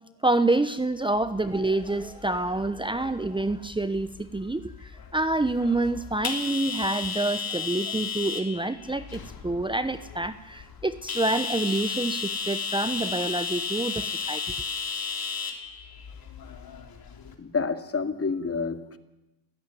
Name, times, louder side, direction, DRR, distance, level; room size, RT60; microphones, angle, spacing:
voice 1, 0.2-14.4, right 2 dB, 10° right, 11 dB, 1.0 m, -27 dB
sound 1, 1.2-17.3, left 5 dB, 60° left, 3.4 m, -35 dB
voice 2, 17.4-19.0, left 4 dB, 35° left, 8 dB, 2.3 m, -29 dB
25.5 x 17.0 x 9.3 m, 1.0 s
cardioid pair, 85°, 41 cm